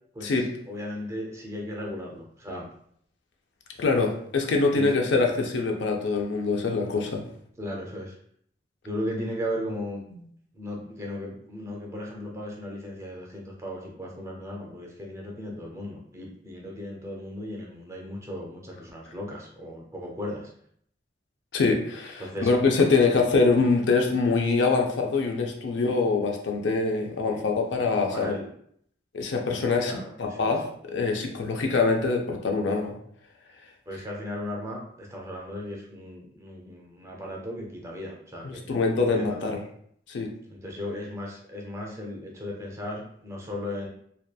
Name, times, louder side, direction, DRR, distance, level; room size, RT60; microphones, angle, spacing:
voice 1, 0.1-2.7 4.7-5.0 7.6-8.1 8.8-10.0 10.5-20.5 22.2-22.5 27.2-27.4 28.1-28.5 29.8-30.5 33.9-38.8 39.0-39.5 40.5-43.9, left 1 dB, 15° right, -1 dB, 0.4 m, -36 dB
voice 2, 3.8-7.2 10.1-10.2 21.5-28.4 29.1-30.6 30.9-33.0 38.4-39.6 40.1-40.3, left 4 dB, 70° left, 2 dB, 0.4 m, -24 dB
2.8 x 2.2 x 2.2 m, 0.66 s
head